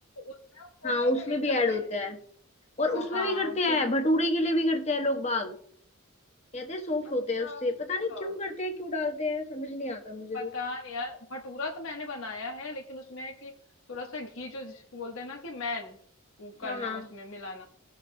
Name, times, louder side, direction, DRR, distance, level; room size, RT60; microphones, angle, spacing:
voice 1, 0.2-1.9 2.9-3.8 7.4-7.7 8.1-8.3 10.3-13.5 13.9-16.0 16.4-17.6, left 3 dB, 70° left, 1 dB, 1.2 m, -38 dB
voice 2, 0.8-2.2 2.8-5.6 6.5-10.5 16.6-17.1, left 2 dB, 30° left, 4 dB, 1.1 m, -28 dB
19.5 x 6.5 x 2.2 m, 0.63 s
head